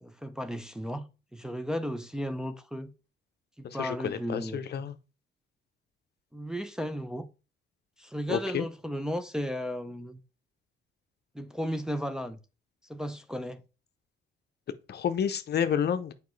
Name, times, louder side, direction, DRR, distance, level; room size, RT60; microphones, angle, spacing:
voice 1, 0.0-1.0 1.3-2.9 3.6-4.6 6.3-7.3 8.0-10.2 11.3-12.4 12.9-13.6, equal, 5° right, 0.6 m, -34 dB
voice 2, 3.6-4.9 8.3-8.7 14.9-16.1, left 8 dB, 55° left, 0.7 m, -30 dB
7.2 x 4.8 x 3.1 m
cardioid pair, 90°, 20 cm